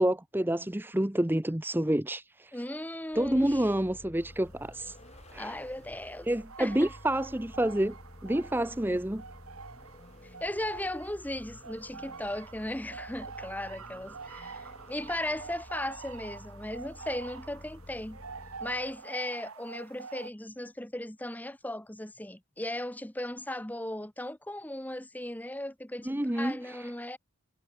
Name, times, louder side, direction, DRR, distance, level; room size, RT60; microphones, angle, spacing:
voice 1, 0.0-2.6 3.1-5.0 5.3-5.6 6.3-8.0 8.2-9.2 26.1-26.9, right 1 dB, 10° right, 0.7 m, -28 dB
voice 2, 2.5-3.7 5.4-6.3 6.6-6.9 10.2-18.2 18.6-27.2, left 1 dB, 10° left, 1.2 m, -37 dB
Vehicle, 3.1-19.0, left 1 dB, 30° left, 1.5 m, -51 dB
sound 1, 4.1-20.3, right 5 dB, 85° right, 1.5 m, -47 dB
head